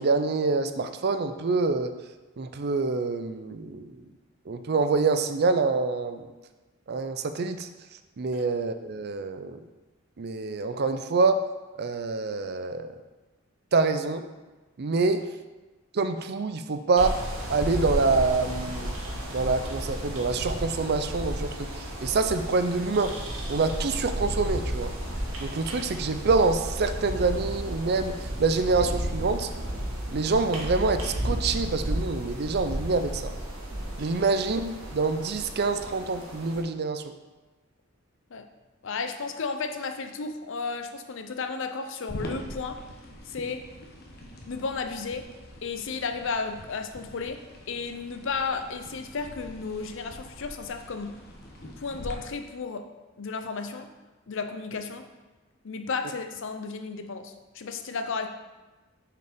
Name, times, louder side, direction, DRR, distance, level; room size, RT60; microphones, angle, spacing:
voice 1, 0.0-1.9 2.4-4.0 4.5-6.2 6.9-7.7 8.2-9.6 10.2-11.4 11.8-13.0 13.7-14.2 14.8-15.3 15.9-17.2 17.5-18.9 19.3-23.2 23.5-24.9 25.4-29.5 30.1-33.3 34.0-37.0, right 3 dB, 55° right, 9 dB, 0.5 m, -26 dB
sound 1, 17.0-36.6, right 1 dB, 85° right, 1.6 m, -33 dB
voice 2, 38.8-42.8 43.3-43.7 44.5-45.3 45.6-47.4 47.7-51.2 51.8-52.9 53.2-53.9 54.3-55.1 55.6-58.3, left 4 dB, 65° left, 8 dB, 0.6 m, -33 dB
sound 2, 42.1-52.1, left 1 dB, 50° left, 1.2 m, -44 dB
6.5 x 4.8 x 5.1 m, 1.2 s
head